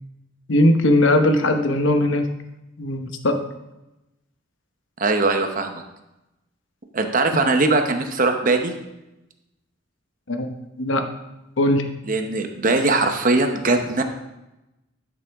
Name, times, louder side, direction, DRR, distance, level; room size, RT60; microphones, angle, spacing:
voice 1, 0.5-2.2 2.8-3.4 10.3-11.1 11.6-11.9, left 1 dB, 75° left, 6 dB, 0.9 m, -19 dB
voice 2, 5.0-5.8 6.9-8.7 12.1-14.0, right 3 dB, 45° right, 6 dB, 0.8 m, -20 dB
11.0 x 6.2 x 3.5 m, 0.95 s
head